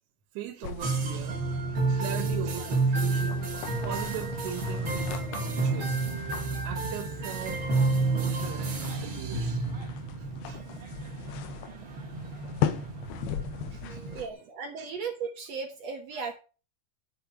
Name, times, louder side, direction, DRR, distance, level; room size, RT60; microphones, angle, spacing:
voice 1, 0.3-1.4 1.9-3.5 3.8-6.2 6.6-9.7 10.2-10.7 13.7-14.4 14.8-14.9 16.1-16.2, right 10 dB, 90° right, 3.4 m, -40 dB
sound 1, 0.6-14.3, left 11 dB, 75° left, 2.7 m, -39 dB
sound 2, 0.8-14.2, right 3 dB, 35° right, 2.3 m, -30 dB
voice 2, 14.1-16.3, right 5 dB, 70° right, 1.6 m, -36 dB
10.5 x 6.8 x 5.6 m
omnidirectional pair, 5.0 m